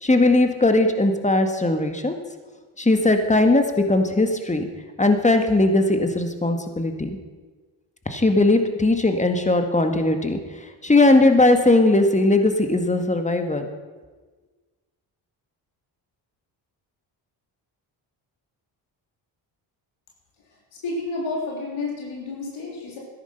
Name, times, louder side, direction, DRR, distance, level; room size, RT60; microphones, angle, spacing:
voice 1, 0.0-2.1 2.8-4.6 5.0-7.2 8.0-10.4 10.8-13.7, left 2 dB, 15° left, 6 dB, 1.8 m, -19 dB
voice 2, 20.4-23.0, left 3 dB, 75° left, -2 dB, 3.6 m, -31 dB
13.5 x 10.5 x 5.8 m, 1.3 s
supercardioid pair, 65°, 50 cm